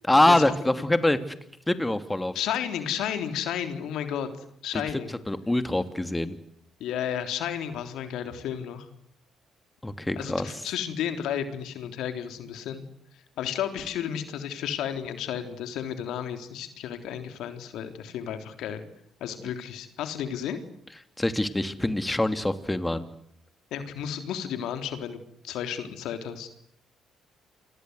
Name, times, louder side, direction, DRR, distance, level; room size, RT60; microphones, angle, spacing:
voice 1, 0.1-1.2 1.7-2.3 5.3-6.4 9.8-10.5 19.4-19.5 21.2-23.1, left 1 dB, 15° left, 10 dB, 2.9 m, -24 dB
voice 2, 2.4-5.1 6.8-8.9 10.2-12.8 13.4-18.8 19.2-20.6 23.7-26.5, left 9 dB, 70° left, 8 dB, 3.5 m, -32 dB
29.5 x 24.0 x 8.2 m, 0.71 s
hypercardioid pair, 50°, 0 cm